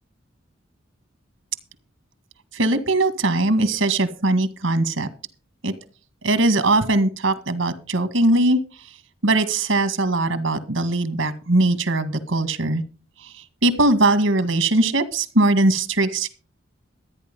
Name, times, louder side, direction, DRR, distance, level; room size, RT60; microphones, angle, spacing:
voice 1, 2.5-5.1 5.6-5.7 6.2-8.6 9.2-12.8 13.6-16.3, right 2 dB, 85° right, 11 dB, 1.9 m, -20 dB
13.5 x 9.7 x 5.4 m, 0.36 s
head